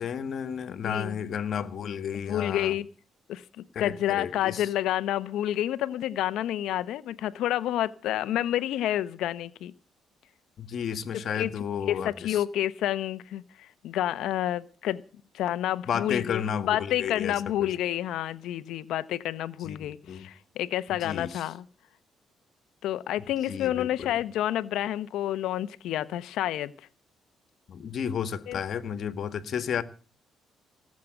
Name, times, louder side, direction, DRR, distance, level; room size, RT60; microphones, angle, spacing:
voice 1, 0.0-2.7 3.7-4.7 10.6-12.4 15.9-17.7 19.6-20.3 20.9-21.5 23.5-24.1 27.7-29.8, left 8 dB, 60° left, 1.7 m, -32 dB
voice 2, 0.8-1.2 2.2-2.9 3.3-9.7 11.3-11.5 11.9-15.0 15.3-21.6 22.8-26.7 28.5-28.6, left 12 dB, 85° left, 1.0 m, -29 dB
18.5 x 7.6 x 8.9 m
cardioid pair, 90°, 0 cm